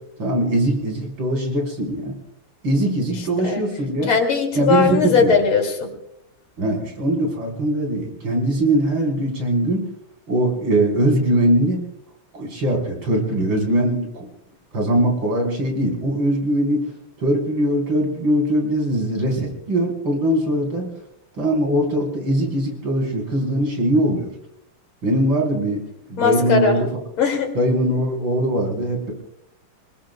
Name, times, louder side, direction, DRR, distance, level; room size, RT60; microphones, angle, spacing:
voice 1, 0.2-2.1 2.6-4.1 4.5-5.4 6.6-9.8 10.3-11.8 12.3-14.3 14.7-16.8 17.2-20.8 21.4-24.3 25.0-25.8 26.1-26.9 27.5-29.1, right 1 dB, 60° right, 0 dB, 5.0 m, -21 dB
voice 2, 4.1-5.9 26.2-26.7 27.2-27.5, left 5 dB, 70° left, 3 dB, 3.3 m, -19 dB
27.0 x 20.0 x 2.2 m, 0.77 s
omnidirectional pair, 2.4 m